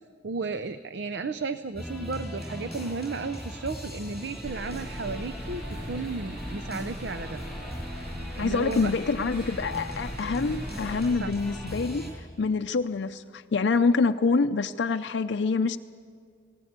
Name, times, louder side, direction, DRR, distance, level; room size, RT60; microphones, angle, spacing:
voice 1, 0.2-7.4 8.3-8.9 11.2-11.3, right 4 dB, 65° right, 0.6 m, -34 dB
sound 1, 1.7-12.1, equal, 5° right, 5.4 m, -39 dB
sound 2, 4.4-11.1, equal, 85° right, 2.8 m, -40 dB
voice 2, 8.4-15.8, left 4 dB, 70° left, 0.5 m, -26 dB
19.0 x 18.0 x 8.1 m
head